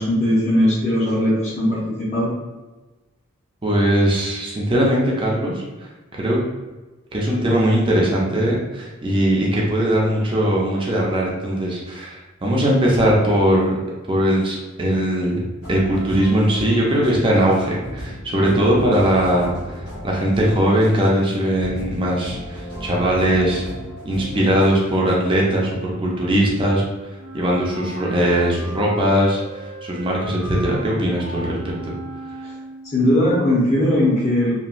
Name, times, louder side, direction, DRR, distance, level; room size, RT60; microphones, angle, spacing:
voice 1, 0.0-2.4 32.4-32.5 32.9-34.6, left 1 dB, 35° left, -9 dB, 0.8 m, -19 dB
voice 2, 3.6-6.4 7.1-13.7 14.1-15.4 15.7-23.7 24.0-26.8 27.3-31.9, equal, 25° right, -3 dB, 0.4 m, -20 dB
sound 1, 15.6-25.1, equal, 80° left, 1.4 m, -35 dB
Wind instrument woodwind instrument, 27.2-33.0, right 1 dB, 85° right, 0.4 m, -36 dB
2.9 x 2.2 x 2.5 m, 1.2 s
head